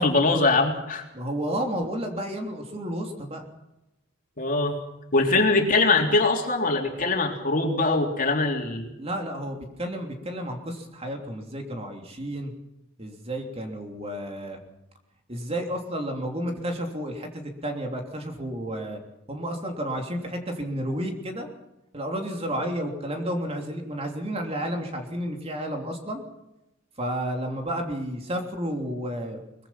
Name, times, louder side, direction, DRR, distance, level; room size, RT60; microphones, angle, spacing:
voice 1, 0.0-1.0 4.4-4.8 5.1-8.9, left 3 dB, 45° left, 2 dB, 3.5 m, -22 dB
voice 2, 1.1-3.5 9.0-12.5 13.0-14.6 15.3-19.0 19.3-21.5 21.9-26.2 27.0-29.4, equal, 30° right, 3 dB, 3.3 m, -31 dB
23.0 x 21.5 x 5.9 m, 0.90 s
head